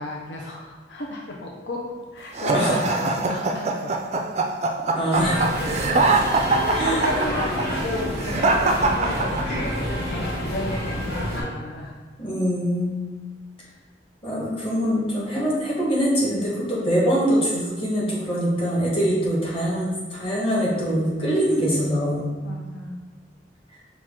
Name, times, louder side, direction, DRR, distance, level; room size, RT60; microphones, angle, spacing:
voice 1, 0.0-4.3 6.5-11.9 22.4-23.0, left 2 dB, 80° left, -1 dB, 0.6 m, -33 dB
sound 1, 2.4-9.8, right 3 dB, 35° right, 0.4 m, -22 dB
voice 2, 4.9-5.5 6.7-7.0 12.2-13.1 14.2-22.3, equal, 30° left, -6 dB, 1.2 m, -23 dB
sound 2, 5.1-11.4, equal, 60° left, 1.3 m, -28 dB
5.7 x 2.4 x 3.6 m, 1.4 s
head